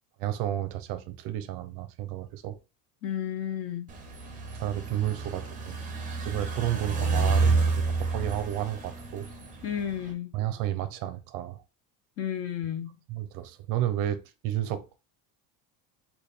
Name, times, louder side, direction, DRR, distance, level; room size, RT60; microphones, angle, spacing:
voice 1, 0.2-2.6 4.5-5.8 6.2-9.3 10.3-11.6 13.1-15.0, right 12 dB, 55° right, 0.6 m, -32 dB
voice 2, 3.0-3.9 9.6-10.3 12.2-13.0, left 9 dB, 35° left, 0.5 m, -32 dB
sound 1, 3.9-10.1, right 4 dB, 20° right, 0.7 m, -29 dB
4.1 x 2.3 x 3.3 m
cardioid pair, 145°, 41 cm